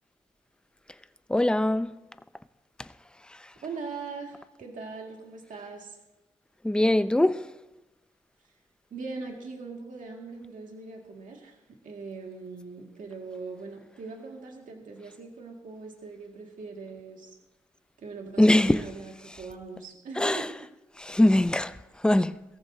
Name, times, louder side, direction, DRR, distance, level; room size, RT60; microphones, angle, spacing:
voice 1, 1.3-1.9 6.6-7.4 18.4-18.8 20.2-20.5 21.0-21.8 22.0-22.4, left 1 dB, 5° left, 0.5 m, -22 dB
voice 2, 3.6-6.0 8.9-11.6 11.8-17.3 18.0-20.7, right 4 dB, 85° right, 2.1 m, -41 dB
21.0 x 14.5 x 2.7 m
cardioid pair, 80°, 13 cm